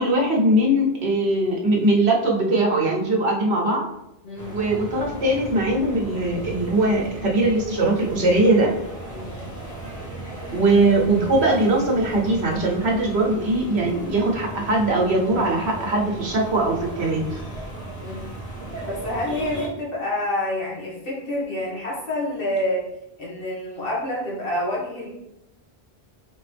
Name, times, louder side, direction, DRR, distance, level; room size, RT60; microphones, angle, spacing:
voice 1, 0.0-3.8 4.5-8.7 10.5-17.4, right 2 dB, 75° right, -1 dB, 1.2 m, -21 dB
sound 1, 4.4-19.7, right 1 dB, 15° left, 1.5 m, -36 dB
voice 2, 18.8-22.8 23.2-25.1, left 1 dB, 60° left, -5 dB, 1.7 m, -28 dB
4.1 x 3.8 x 3.3 m, 0.86 s
omnidirectional pair, 1.1 m